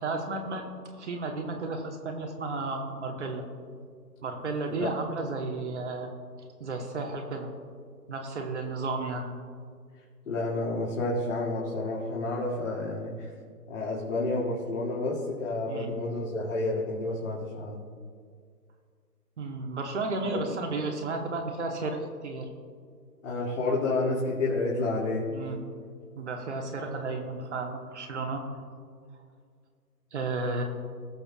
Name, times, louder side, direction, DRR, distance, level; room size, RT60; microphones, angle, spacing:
voice 1, 0.0-3.5 4.2-6.1 6.6-7.5 8.1-9.3 15.7-15.9 19.4-22.5 25.3-25.6 26.1-28.4 30.1-30.6, right 3 dB, 45° right, 3 dB, 1.3 m, -33 dB
voice 2, 10.3-13.3 13.7-17.9 20.3-20.5 23.2-25.3, left 2 dB, 50° left, -6 dB, 2.5 m, -30 dB
20.5 x 6.8 x 2.4 m, 2.1 s
figure-of-eight pair, 150°, 49 cm